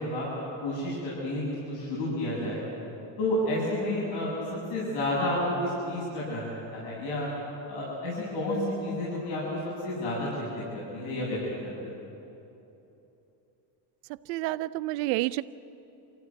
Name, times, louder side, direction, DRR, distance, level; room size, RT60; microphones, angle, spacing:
voice 1, 0.0-2.6 3.2-7.3 7.7-12.0, left 1 dB, 80° left, -7 dB, 7.9 m, -31 dB
voice 2, 14.3-15.4, right 18 dB, 90° right, 17 dB, 0.7 m, -29 dB
25.0 x 16.0 x 9.6 m, 3.0 s
supercardioid pair, 105°, 48 cm